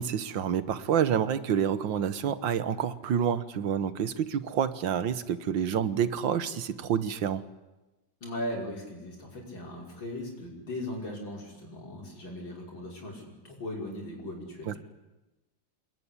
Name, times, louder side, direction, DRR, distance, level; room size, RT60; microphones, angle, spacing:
voice 1, 0.0-7.4 14.7-14.8, right 8 dB, 80° right, 14 dB, 1.9 m, -28 dB
voice 2, 8.2-14.8, left 1 dB, 80° left, -1 dB, 6.1 m, -38 dB
28.5 x 20.5 x 10.0 m, 1.1 s
omnidirectional pair, 2.1 m